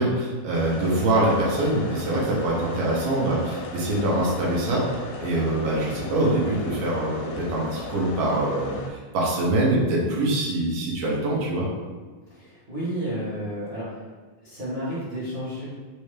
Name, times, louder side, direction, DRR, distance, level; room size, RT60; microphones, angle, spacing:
voice 1, 0.0-4.9 5.2-11.7, right 1 dB, 65° right, -5 dB, 2.1 m, -24 dB
sound 1, 0.5-8.9, left 3 dB, 80° left, 2.2 m, -37 dB
voice 2, 12.3-14.0 14.4-15.7, equal, 50° right, -15 dB, 0.7 m, -31 dB
5.4 x 2.7 x 3.3 m, 1.4 s
omnidirectional pair, 3.8 m